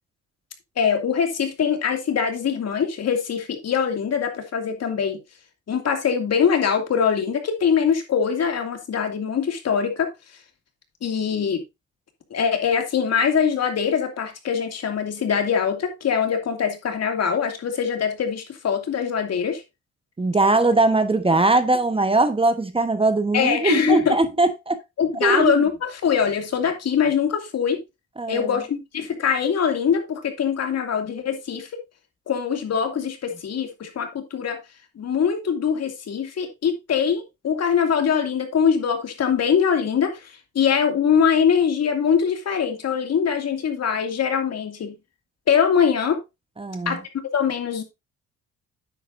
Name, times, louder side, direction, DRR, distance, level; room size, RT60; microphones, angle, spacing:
voice 1, 0.8-5.2 5.7-10.1 11.0-11.6 12.3-19.6 23.3-24.2 25.0-27.8 28.3-31.8 32.3-34.6 35.0-44.9 45.5-46.2 46.9-47.0 47.3-47.8, left 7 dB, 55° left, 2.5 m, -23 dB
voice 2, 20.2-24.8 25.2-25.6 28.2-28.6 46.6-47.0, right 2 dB, 20° right, 1.2 m, -20 dB
9.7 x 7.9 x 2.6 m
cardioid pair, 90°, 30 cm